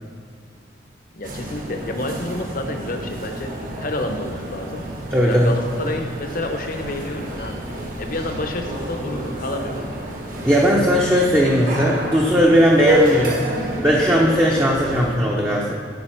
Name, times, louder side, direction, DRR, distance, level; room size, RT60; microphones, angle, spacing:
voice 1, 1.1-4.9 5.2-7.7 8.0-9.9, left 1 dB, 50° left, 5 dB, 0.9 m, -29 dB
sound 1, 1.2-15.2, equal, 50° right, 1.4 m, -28 dB
voice 2, 5.1-5.5 10.4-13.5 13.8-15.7, equal, 15° right, -3 dB, 0.7 m, -17 dB
14.5 x 5.2 x 4.5 m, 2.2 s
head